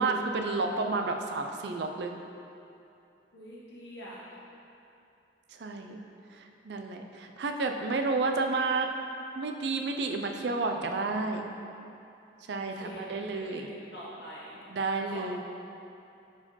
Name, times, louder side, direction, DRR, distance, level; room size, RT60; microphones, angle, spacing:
voice 1, 0.0-2.1 5.5-6.0 6.3-8.9 9.4-11.5 12.5-13.7 14.7-15.4, right 3 dB, 65° right, 4 dB, 0.4 m, -31 dB
voice 2, 3.3-4.2 12.6-14.6 15.1-15.3, equal, 60° left, -7 dB, 1.4 m, -45 dB
4.7 x 4.4 x 5.5 m, 2.7 s
head